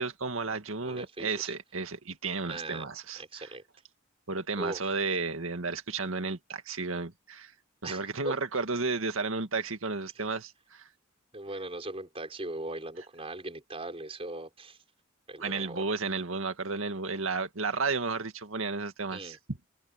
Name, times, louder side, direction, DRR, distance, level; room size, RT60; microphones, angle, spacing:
voice 1, 0.0-3.5 4.3-7.5 7.8-10.9 15.4-19.4, right 4 dB, 90° right, 2.0 m, -33 dB
voice 2, 0.8-1.5 2.5-2.9 3.1-3.6 4.6-5.0 7.8-8.4 11.3-14.8 15.3-15.8 19.1-19.4, right 2 dB, 30° right, 4.6 m, -39 dB
head